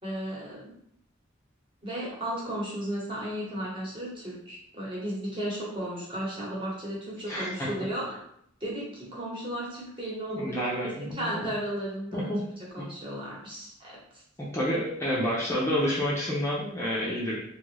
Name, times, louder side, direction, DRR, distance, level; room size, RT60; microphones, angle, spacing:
voice 1, 0.0-0.7 1.8-8.2 8.6-12.3 12.6-14.0, right 1 dB, 25° right, -5 dB, 1.1 m, -35 dB
voice 2, 7.3-7.7 10.3-11.5 12.1-12.4 12.8-12.9 14.5-17.4, equal, 15° left, -6 dB, 0.5 m, -29 dB
3.0 x 2.4 x 3.3 m, 0.71 s
head